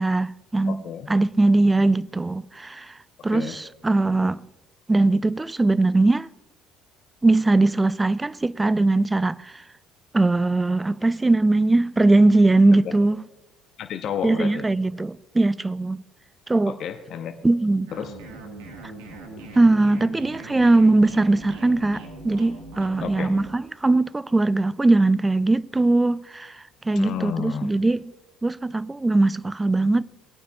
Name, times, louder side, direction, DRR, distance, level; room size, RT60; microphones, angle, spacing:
voice 1, 0.0-0.8 1.1-3.0 3.2-4.4 4.9-6.3 7.2-9.6 10.1-13.2 14.2-16.0 16.5-16.8 17.4-17.9 19.6-28.1 28.4-30.0, right 2 dB, 15° right, 0.3 m, -20 dB
voice 2, 0.7-1.1 3.3-3.6 12.8-12.9 13.8-14.7 16.7-17.4 17.9-18.1 23.0-23.3 26.9-27.7, left 8 dB, 60° left, 0.7 m, -31 dB
sound 1, 17.9-23.5, right 2 dB, 85° right, 1.4 m, -40 dB
19.0 x 9.1 x 2.3 m
hypercardioid pair, 65°, 0 cm